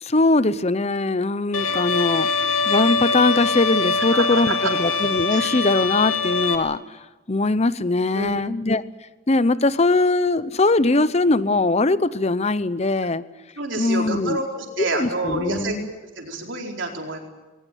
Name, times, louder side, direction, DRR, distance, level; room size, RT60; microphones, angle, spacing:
voice 1, 0.0-2.3 2.7-6.8 7.3-8.8 9.3-13.2 13.8-14.4 14.8-15.9, left 2 dB, 30° left, 16 dB, 0.7 m, -21 dB
Bowed string instrument, 1.5-6.6, left 4 dB, 85° left, 2.2 m, -23 dB
voice 2, 4.1-4.7 5.3-5.6 8.1-8.4 13.6-17.2, right 2 dB, 60° right, 1 dB, 4.4 m, -28 dB
21.5 x 19.0 x 9.2 m, 1.1 s
head